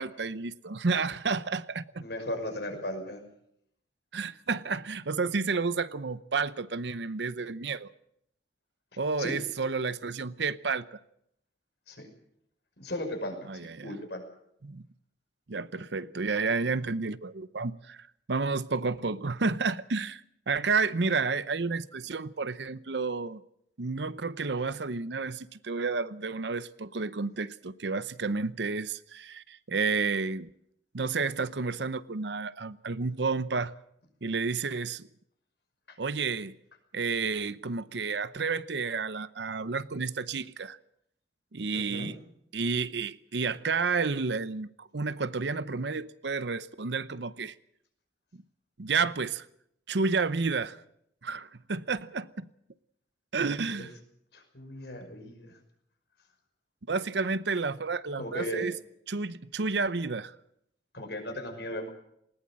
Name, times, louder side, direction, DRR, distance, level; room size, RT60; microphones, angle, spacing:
voice 1, 0.0-2.0 4.1-7.9 9.0-11.0 13.5-13.9 14.6-14.8 15.5-23.4 23.8-30.5 30.9-33.7 34.2-35.1 36.0-36.6 36.9-40.8 41.5-42.2 42.5-47.5 48.8-49.5 49.9-50.8 51.2-52.5 53.3-53.9 56.9-58.8 59.1-60.3, right 4 dB, 75° right, 0.8 m, -31 dB
voice 2, 2.0-3.2 9.2-9.4 11.9-12.1 12.8-14.2 35.9-36.0 41.7-42.1 53.4-53.9 54.3-55.6 58.2-58.7 60.9-61.9, left 1 dB, 65° left, 5.7 m, -37 dB
19.5 x 19.0 x 7.6 m
head